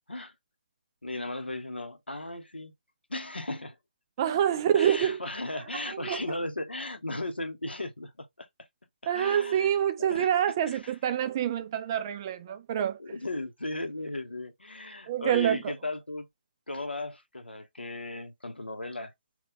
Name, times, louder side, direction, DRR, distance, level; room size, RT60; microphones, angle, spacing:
voice 1, 1.0-2.7 3.1-3.8 4.7-8.5 9.1-9.7 10.0-10.3 10.7-10.9 12.5-12.6 13.0-16.3 16.7-19.1, left 2 dB, 85° left, 0.8 m, -36 dB
voice 2, 4.2-5.2 5.5-6.2 9.1-13.0 15.1-15.7, right 10 dB, 25° right, 0.3 m, -27 dB
3.0 x 2.3 x 3.8 m
figure-of-eight pair, 150°, 5 cm